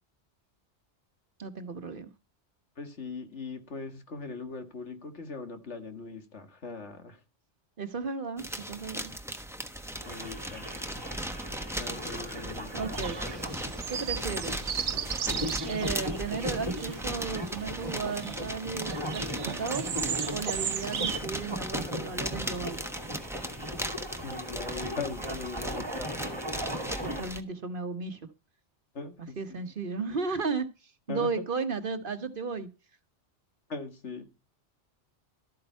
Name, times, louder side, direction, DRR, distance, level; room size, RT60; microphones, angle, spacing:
voice 1, 1.4-2.1 7.8-9.1 12.7-13.2 13.9-14.7 15.7-19.2 19.6-22.8 27.2-28.2 29.4-32.7, right 4 dB, 50° right, 1.2 m, -34 dB
voice 2, 2.8-7.2 10.1-10.7 11.8-12.7 24.2-26.8 28.9-29.6 31.1-31.3 33.7-34.2, left 4 dB, 75° left, 2.1 m, -40 dB
sound 1, 8.4-27.4, right 1 dB, ahead, 1.1 m, -38 dB
sound 2, 9.9-27.2, equal, 20° right, 2.2 m, -38 dB
sound 3, 12.9-21.2, right 8 dB, 80° right, 1.2 m, -36 dB
13.0 x 8.6 x 4.5 m
omnidirectional pair, 1.2 m